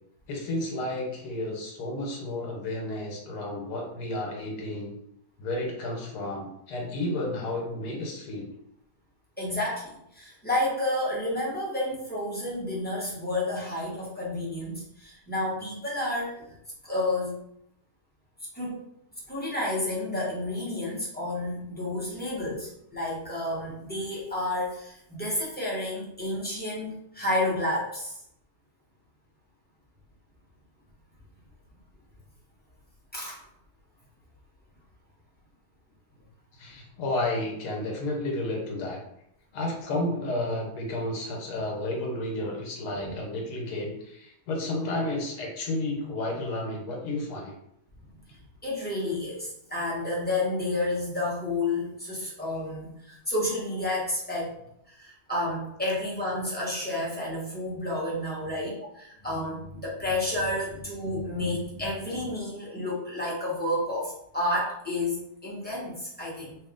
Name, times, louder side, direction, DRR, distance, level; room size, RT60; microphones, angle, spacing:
voice 1, 0.3-4.9 5.4-8.5 36.6-39.0 39.5-47.5, left 1 dB, 80° left, 0 dB, 1.4 m, -32 dB
voice 2, 9.4-16.5 16.8-17.4 18.5-18.8 19.3-28.2 33.1-33.4 43.0-43.1 48.3-54.5 54.9-66.6, left 1 dB, 10° left, -7 dB, 0.7 m, -30 dB
3.0 x 2.7 x 3.6 m, 0.76 s
omnidirectional pair, 1.7 m